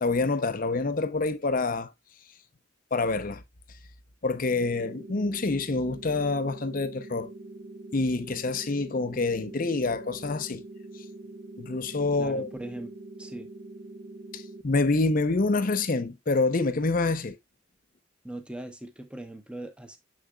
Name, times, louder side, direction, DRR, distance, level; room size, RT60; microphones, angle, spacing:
voice 1, 0.0-1.9 2.9-3.4 4.2-7.3 7.9-10.6 11.6-12.5 14.3-17.4, left 3 dB, 45° left, 0.6 m, -27 dB
sound 1, 4.6-14.6, right 2 dB, 45° right, 0.8 m, -44 dB
voice 2, 12.2-12.9 13.2-13.5 18.2-20.0, right 1 dB, 5° right, 0.8 m, -40 dB
7.1 x 6.5 x 2.3 m
head